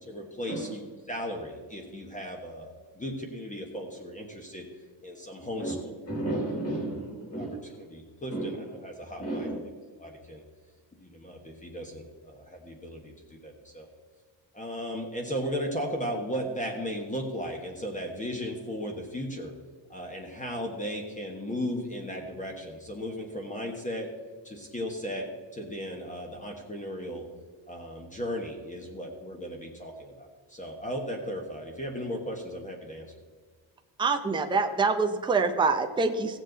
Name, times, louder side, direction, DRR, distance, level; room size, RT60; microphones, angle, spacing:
voice 1, 0.0-5.7 7.4-7.5 7.8-9.5 10.0-10.4 11.0-13.9 14.5-19.5 19.9-24.1 24.4-27.3 27.7-33.1, equal, 15° left, 1 dB, 1.3 m, -36 dB
voice 2, 5.6-7.7 8.3-8.7 9.2-9.6, right 1 dB, 30° left, -1 dB, 3.9 m, -33 dB
voice 3, 34.0-36.4, right 4 dB, 10° right, 5 dB, 0.6 m, -25 dB
16.5 x 7.5 x 4.0 m, 1.5 s
cardioid pair, 150°, 46 cm